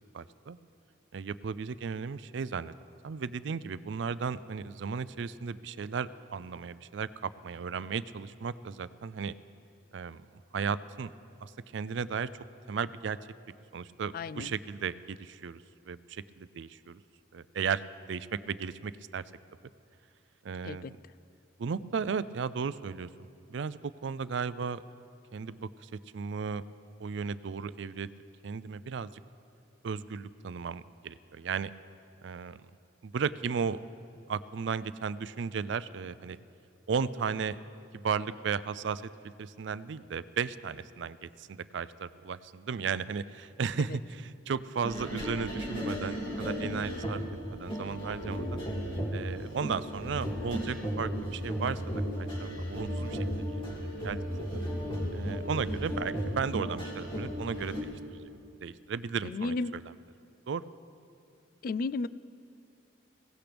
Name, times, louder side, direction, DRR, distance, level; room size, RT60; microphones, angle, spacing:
voice 1, 0.1-0.6 1.1-2.7 3.0-9.3 9.9-10.2 10.5-11.1 11.4-13.2 13.7-17.0 17.3-19.2 20.4-21.0 21.6-23.1 23.5-24.8 25.3-26.6 27.0-28.1 28.4-29.1 29.8-31.7 32.2-32.6 33.0-33.8 34.3-36.4 36.9-37.6 37.9-39.0 39.4-47.2 47.5-48.6 49.1-51.8 52.1-54.2 55.1-58.3 58.6-59.8 60.5-60.6, right 6 dB, 65° right, 16 dB, 0.4 m, -35 dB
voice 2, 14.1-14.5 20.6-20.9 59.2-59.7 61.6-62.1, left 3 dB, 45° left, 18 dB, 0.3 m, -33 dB
sound 1, 44.8-57.8, equal, 25° left, 2.3 m, -35 dB
22.0 x 17.0 x 3.4 m, 2.5 s
head